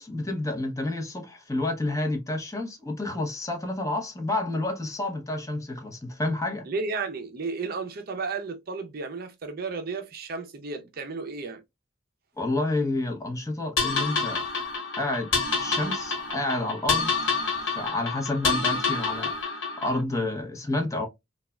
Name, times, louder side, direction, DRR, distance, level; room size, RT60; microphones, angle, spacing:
voice 1, 0.0-6.7 12.4-14.4 15.0-15.3 15.6-17.1 17.7-19.3 19.6-21.1, left 2 dB, 15° left, 0.7 m, -29 dB
voice 2, 6.7-11.6, right 4 dB, 50° right, 0.5 m, -33 dB
sound 1, 13.8-20.0, left 4 dB, 85° left, 1.1 m, -28 dB
3.2 x 2.3 x 2.2 m
head